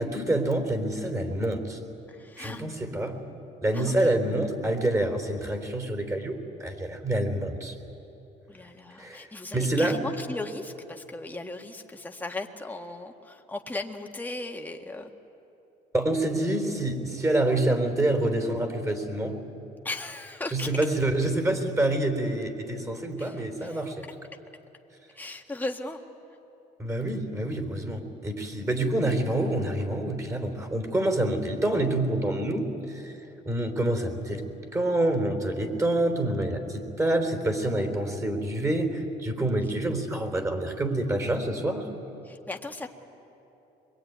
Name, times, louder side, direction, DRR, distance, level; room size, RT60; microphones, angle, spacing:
voice 1, 0.0-1.8 2.4-3.2 3.6-7.8 9.0-9.3 9.5-10.0 15.9-19.5 20.5-24.0 26.8-33.1 33.4-34.4 34.7-41.9, right 1 dB, 15° right, 6 dB, 3.7 m, -27 dB
voice 2, 2.1-2.6 3.7-4.1 8.5-15.1 19.8-20.7 23.2-23.8 25.1-26.0 42.2-42.9, left 2 dB, 10° left, 2 dB, 1.7 m, -37 dB
23.0 x 22.0 x 9.4 m, 3.0 s
cardioid pair, 110°, 17 cm